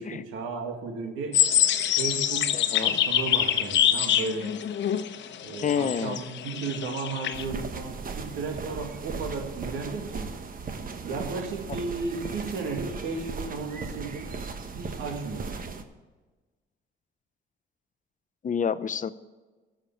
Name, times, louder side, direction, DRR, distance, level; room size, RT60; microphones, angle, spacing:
voice 1, 0.0-1.4 2.0-4.6 5.4-10.3 11.0-14.3 14.7-15.6, right 4 dB, 90° right, 4 dB, 2.2 m, -34 dB
sound 1, 1.3-7.4, left 10 dB, 65° left, 1.0 m, -25 dB
voice 2, 2.5-3.0 5.6-6.2 18.4-19.1, left 7 dB, 40° left, 15 dB, 0.7 m, -28 dB
sound 2, 7.3-15.8, right 4 dB, 45° right, 1.3 m, -37 dB
13.0 x 7.3 x 8.5 m, 1.3 s
cardioid pair, 90°, 20 cm